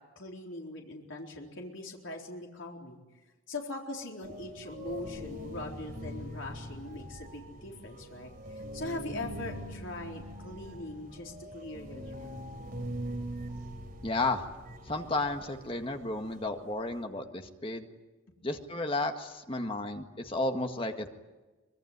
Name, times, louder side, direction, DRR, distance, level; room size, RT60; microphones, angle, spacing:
voice 1, 0.2-3.0 3.5-12.3 18.3-18.4, left 2 dB, 60° left, 0 dB, 4.1 m, -41 dB
sound 1, 4.2-17.0, equal, 45° right, 4.5 m, -42 dB
voice 2, 14.0-14.5 14.8-17.8 18.4-21.1, left 2 dB, 25° left, 5 dB, 1.8 m, -33 dB
25.0 x 22.0 x 9.6 m, 1.2 s
head